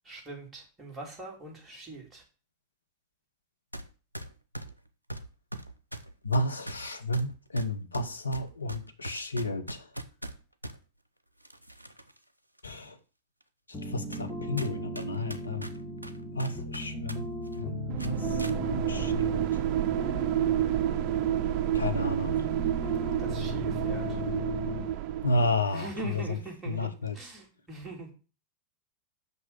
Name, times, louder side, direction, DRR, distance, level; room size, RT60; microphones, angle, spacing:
voice 1, 0.0-2.2 23.2-24.2 25.7-28.1, right 2 dB, 15° right, 3.6 m, -42 dB
sound 1, 3.7-3.9 4.1-10.8 11.4-12.2 12.6-12.7 13.4-13.5 14.1-14.3 14.6-17.2 17.4-17.6 18.0-18.6, right 1 dB, 85° right, 0.7 m, -41 dB
voice 2, 6.2-9.9 12.6-13.0 13.8-15.7 16.3-17.2 17.6-19.4 21.7-22.3 25.2-26.2 26.7-27.2, left 1 dB, 80° left, 1.0 m, -32 dB
sound 2, 13.7-24.9, left 1 dB, 15° left, 2.2 m, -37 dB
sound 3, 17.9-25.7, right 12 dB, 45° right, 0.5 m, -29 dB
6.2 x 5.5 x 7.0 m
figure-of-eight pair, 90°, 0 cm